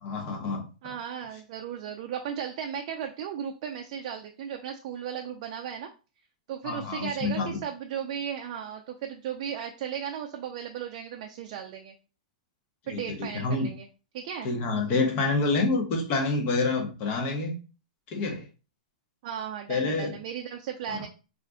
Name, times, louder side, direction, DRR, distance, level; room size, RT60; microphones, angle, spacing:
voice 1, 0.0-0.6 6.6-7.6 12.9-13.7 14.4-17.6 18.1-18.4 19.7-20.2 20.9-21.0, left 3 dB, 40° left, 0.8 m, -27 dB
voice 2, 0.8-5.9 6.5-11.9 12.9-13.9 14.1-14.5 19.2-21.1, right 8 dB, 50° right, 0.4 m, -36 dB
2.5 x 2.1 x 3.6 m
hypercardioid pair, 150°, 4 cm